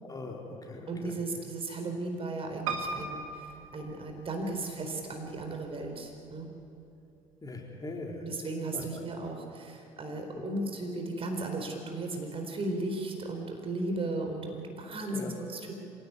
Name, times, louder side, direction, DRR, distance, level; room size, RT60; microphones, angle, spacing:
voice 1, 0.0-1.2 7.4-8.2 8.7-9.0 10.3-10.5 15.1-15.3, left 3 dB, 20° left, 0 dB, 3.8 m, -41 dB
voice 2, 0.9-6.5 8.2-15.7, right 2 dB, 30° right, 4 dB, 4.3 m, -36 dB
Piano, 2.7-4.6 5.3-6.0 6.3-6.4 6.6-6.7, right 4 dB, 70° right, 1.6 m, -37 dB
25.5 x 17.5 x 9.6 m, 2.7 s
figure-of-eight pair, 55°, 17 cm